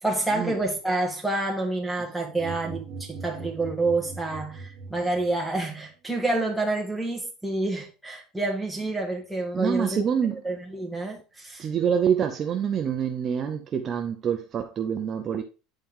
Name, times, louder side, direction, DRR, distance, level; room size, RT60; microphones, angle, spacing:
voice 1, 0.0-10.0 10.4-11.7, right 2 dB, ahead, 1.6 m, -28 dB
sound 1, 2.4-5.6, right 4 dB, 45° right, 1.6 m, -40 dB
voice 2, 9.5-10.4 11.6-15.4, right 7 dB, 30° right, 0.6 m, -26 dB
8.9 x 4.4 x 3.6 m
cardioid pair, 160°, 0 cm